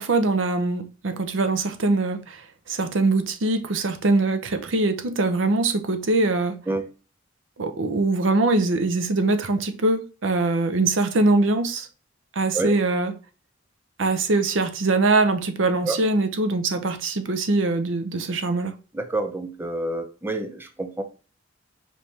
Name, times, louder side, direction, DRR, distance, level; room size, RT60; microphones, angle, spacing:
voice 1, 0.0-2.4 2.7-6.6 7.6-11.9 12.4-13.1 14.0-18.7, right 2 dB, 80° right, 0.7 m, -22 dB
voice 2, 18.9-21.0, right 2 dB, 10° right, 0.5 m, -28 dB
5.3 x 3.3 x 2.8 m
head